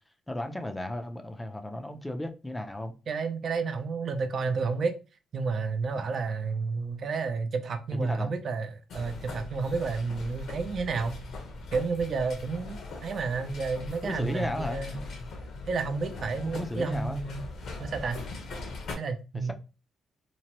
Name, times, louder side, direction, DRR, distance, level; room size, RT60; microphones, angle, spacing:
voice 1, 0.3-2.9 7.9-8.3 14.0-14.8 16.4-17.2 19.3-19.5, left 1 dB, 15° left, 0.5 m, -34 dB
voice 2, 3.1-5.0 5.3-11.2 11.7-15.0 15.7-17.4 17.8-18.2 19.0-19.5, right 4 dB, 55° right, 0.5 m, -31 dB
sound 1, 8.9-19.0, left 3 dB, 70° left, 0.9 m, -40 dB
2.9 x 2.1 x 2.9 m
cardioid pair, 90°, 0 cm